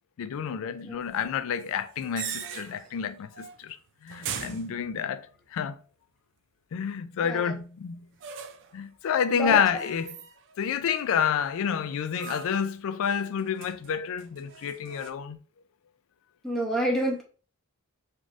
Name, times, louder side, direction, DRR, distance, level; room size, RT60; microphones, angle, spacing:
voice 1, 0.2-3.8 4.0-5.2 5.5-5.8 6.7-8.0 8.7-10.2 10.6-15.4, left 7 dB, 65° left, 0.3 m, -29 dB
voice 2, 0.8-1.1 7.2-7.5 9.3-9.6 16.4-17.2, right 1 dB, ahead, 0.7 m, -28 dB
sound 1, 1.6-3.0 3.3-3.7 4.1-5.4 8.2-8.8 9.7-10.6 10.9-11.5 12.2-12.7 13.0-15.1, right 8 dB, 55° right, 0.4 m, -41 dB
3.2 x 2.5 x 2.5 m
head